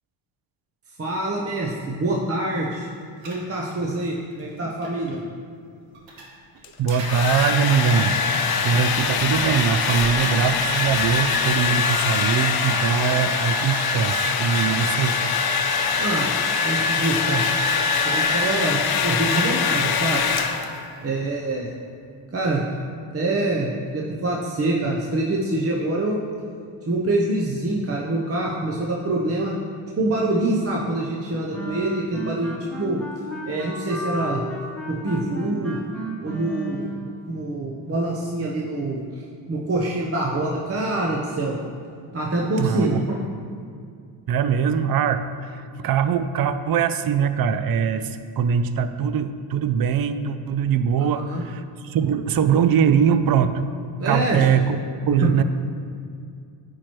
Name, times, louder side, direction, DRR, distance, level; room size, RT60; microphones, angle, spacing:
voice 1, 1.0-2.9 3.2-5.2 14.7-15.0 16.0-16.3 16.6-17.4 18.0-20.2 21.0-21.7 22.3-22.6 23.1-26.2 26.9-29.5 30.0-33.0 33.5-34.4 34.9-35.8 36.2-39.0 39.5-41.6 42.1-43.2 51.0-51.4 54.0-54.4 55.2-55.3, right 2 dB, 30° right, -2 dB, 0.8 m, -25 dB
sound 1, 2.5-5.2 5.9-11.3, right 1 dB, 65° right, 1.4 m, -41 dB
Domestic sounds home sounds, 6.6-20.9, left 5 dB, 50° left, 0.7 m, -23 dB
voice 2, 6.8-8.2 8.6-15.1 42.6-43.0 44.3-45.2 45.5-53.6 54.1-54.8 55.1-55.4, right 7 dB, 50° right, 11 dB, 0.5 m, -22 dB
sound 2, 31.5-37.2, right 1 dB, 5° left, 1.5 m, -33 dB
9.7 x 4.5 x 3.1 m, 2.3 s
supercardioid pair, 75°, 48 cm